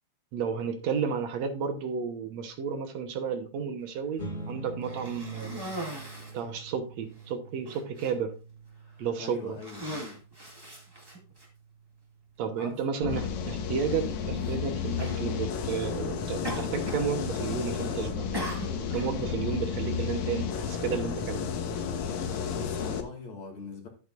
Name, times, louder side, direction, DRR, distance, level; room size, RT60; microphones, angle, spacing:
voice 1, 0.3-5.8 6.3-8.3 9.0-9.6 12.4-18.3 18.9-21.4, right 6 dB, 70° right, 7 dB, 2.2 m, -32 dB
sound 1, 4.2-14.9, right 2 dB, 15° left, 2.2 m, -46 dB
Cough, 4.8-6.4 7.2-7.3 7.6-8.1 8.9-9.1 9.5-11.5 12.4-12.5 14.3-14.6 15.0-15.2 16.4-17.1 17.4-17.8 18.3-19.1, equal, 10° right, 1.6 m, -39 dB
voice 2, 9.2-10.2 12.6-12.8 22.5-23.9, left 4 dB, 50° left, 2 dB, 2.5 m, -42 dB
sound 2, 13.0-23.0, left 7 dB, 80° left, 2.5 m, -32 dB
11.0 x 8.8 x 2.5 m, 0.34 s
omnidirectional pair, 3.4 m